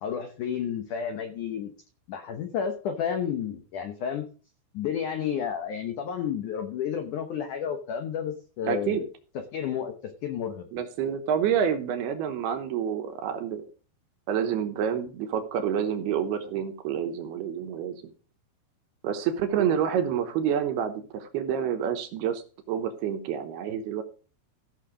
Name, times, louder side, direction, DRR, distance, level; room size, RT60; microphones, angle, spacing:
voice 1, 0.0-1.7 2.1-4.2 4.7-9.1 9.5-9.9 10.2-10.7, left 8 dB, 75° left, 6 dB, 1.8 m, -31 dB
voice 2, 8.7-9.0 10.7-13.6 14.3-18.0 19.0-24.0, right 8 dB, 70° right, 7 dB, 2.8 m, -28 dB
15.0 x 6.5 x 5.0 m, 0.38 s
omnidirectional pair, 5.1 m